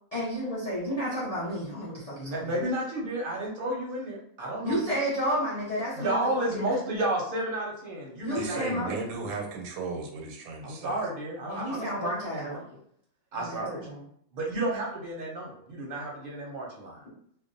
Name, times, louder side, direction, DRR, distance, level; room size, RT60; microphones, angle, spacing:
voice 1, 0.1-2.6 4.6-6.2 6.5-6.8 8.2-8.9 11.5-12.6 13.3-14.0 17.1-17.2, equal, 55° left, -7 dB, 0.4 m, -31 dB
voice 2, 2.2-4.9 6.0-9.0 10.6-12.6 13.3-13.8 14.3-17.0, right 1 dB, 55° right, -2 dB, 0.6 m, -32 dB
voice 3, 8.4-11.1, right 4 dB, 90° right, 3 dB, 1.1 m, -36 dB
2.5 x 2.0 x 2.5 m, 0.65 s
omnidirectional pair, 1.5 m